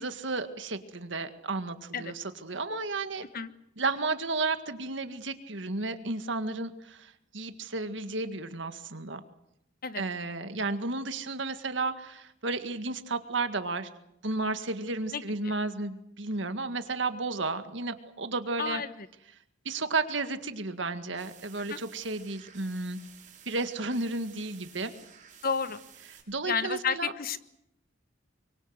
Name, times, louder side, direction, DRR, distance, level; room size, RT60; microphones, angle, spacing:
voice 1, 0.0-3.2 3.8-9.2 10.0-13.9 14.2-18.8 19.7-23.0 23.5-24.9 26.3-27.1, right 3 dB, 70° right, 9 dB, 1.9 m, -33 dB
voice 2, 15.1-15.5 18.6-19.1 21.7-21.8 25.4-25.8 26.4-27.4, left 6 dB, 50° left, 13 dB, 1.1 m, -31 dB
sound 1, 21.1-26.2, right 8 dB, 40° right, 6.5 m, -53 dB
24.0 x 24.0 x 8.0 m, 0.81 s
head